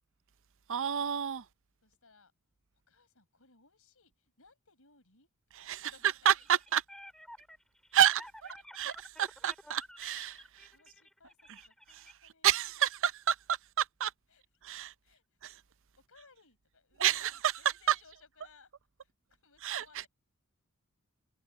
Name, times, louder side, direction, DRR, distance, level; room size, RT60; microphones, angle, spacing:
voice 1, 0.7-1.5 5.6-5.9 6.3-6.8 7.9-8.2 8.8-10.7 11.9-12.1 12.4-14.1 14.6-14.9 15.4-15.6 17.0-17.3 17.9-18.0 19.6-20.0, right 10 dB, 60° right, 0.6 m, -29 dB
voice 2, 1.8-2.3 2.7-5.3 5.6-6.4 8.4-8.6 10.3-12.6 14.3-14.7 15.0-15.4 16.1-18.7 19.0-20.1, left 4 dB, 70° left, 5.7 m, -63 dB
sound 1, 6.3-12.1, equal, 5° left, 5.3 m, -52 dB
head